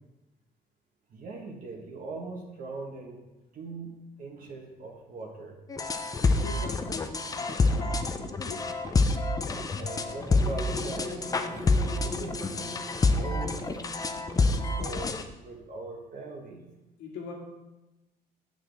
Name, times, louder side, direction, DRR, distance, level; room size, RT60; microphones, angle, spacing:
voice 1, 1.1-3.2 3.5-5.6 9.8-12.8 13.1-13.9 14.8-16.7, right 3 dB, 55° right, 1 dB, 1.2 m, -41 dB
sound 1, 5.7-15.2, left 3 dB, 20° left, 0.5 m, -27 dB
voice 2, 6.1-8.7 17.0-17.3, left 4 dB, 80° left, -1 dB, 1.8 m, -42 dB
sound 2, 10.4-15.3, left 1 dB, 5° left, 1.7 m, -41 dB
6.8 x 6.2 x 3.4 m, 1.0 s
cardioid pair, 110°, 17 cm